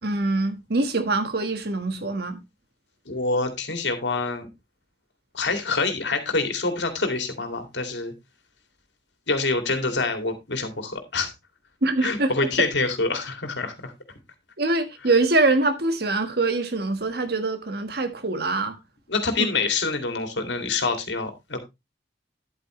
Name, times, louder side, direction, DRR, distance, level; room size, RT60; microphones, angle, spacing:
voice 1, 0.0-2.4 11.8-12.7 14.6-18.8, right 2 dB, 65° right, 1.5 m, -24 dB
voice 2, 3.1-4.5 5.3-8.1 9.3-11.3 12.0-13.9 19.1-21.6, left 3 dB, 85° left, 2.4 m, -26 dB
10.5 x 8.6 x 3.1 m
head